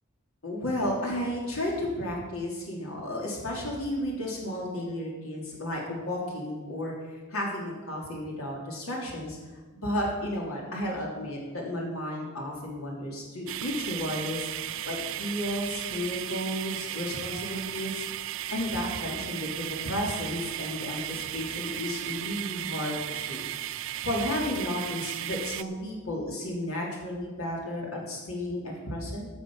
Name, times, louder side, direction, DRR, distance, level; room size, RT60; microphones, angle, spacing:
voice 1, 0.4-9.4 9.7-14.5 14.8-18.0 18.5-23.5 24.0-29.3, left 1 dB, 90° left, -2 dB, 3.2 m, -33 dB
sound 1, 13.5-25.6, right 12 dB, 65° right, 0.4 m, -35 dB
15.5 x 6.4 x 6.3 m, 1.3 s
head